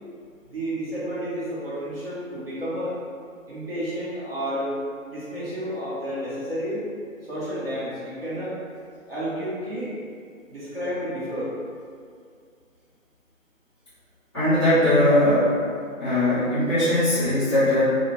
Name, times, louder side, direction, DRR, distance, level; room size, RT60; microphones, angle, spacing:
voice 1, 0.4-3.0 3.5-4.7 5.1-6.8 7.2-8.5 9.0-9.9 10.5-11.5, equal, 45° right, -10 dB, 0.7 m, -31 dB
voice 2, 14.3-15.6 16.0-17.8, left 1 dB, 20° left, -14 dB, 0.9 m, -20 dB
2.2 x 2.0 x 2.8 m, 2.2 s
figure-of-eight pair, 155°, 41 cm